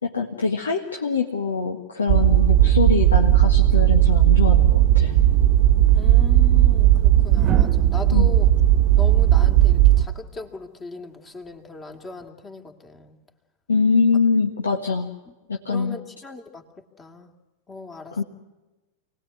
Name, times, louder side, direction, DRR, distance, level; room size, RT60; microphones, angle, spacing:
voice 1, 0.0-5.2 8.1-8.3 13.7-15.2 15.5-16.0 18.2-18.3, left 4 dB, 70° left, 2 dB, 1.7 m, -23 dB
sound 1, 2.1-10.1, right 13 dB, 50° right, 1.2 m, -16 dB
sound 2, 5.8-6.0 7.3-10.4 11.9-12.2, right 6 dB, 30° right, 1.4 m, -34 dB
voice 2, 5.9-8.5 9.0-13.2 15.3-15.4 15.7-17.3 17.7-18.2, left 3 dB, 20° left, 4 dB, 2.5 m, -38 dB
28.0 x 19.5 x 9.5 m, 1.1 s
figure-of-eight pair, 90°, 0 cm